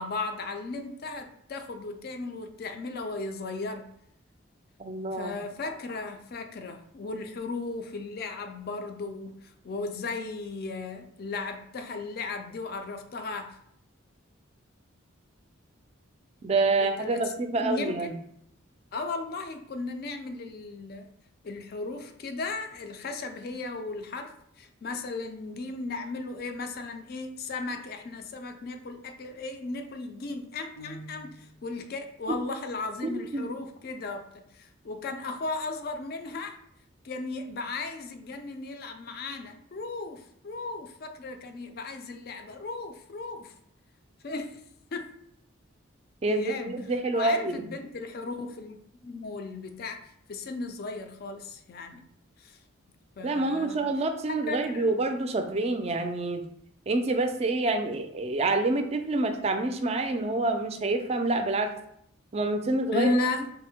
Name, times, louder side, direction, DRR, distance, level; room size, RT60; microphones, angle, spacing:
voice 1, 0.0-3.9 5.1-13.6 16.8-18.1 18.9-21.1 21.4-36.6 37.0-43.5 44.2-44.6 44.9-45.1 46.3-46.9 47.1-48.8 49.0-50.0 50.3-52.0 52.4-52.6 53.2-53.8 54.5-54.9 62.9-63.5, left 3 dB, 50° left, 6 dB, 0.4 m, -35 dB
voice 2, 4.8-5.4 16.4-18.1 33.0-33.5 46.2-47.7 53.2-56.4 56.9-61.7 62.3-63.1, right 2 dB, 30° right, 6 dB, 0.3 m, -27 dB
sound 1, 30.8-31.8, right 1 dB, 90° left, 1.0 m, -46 dB
3.5 x 2.0 x 4.3 m, 0.71 s
head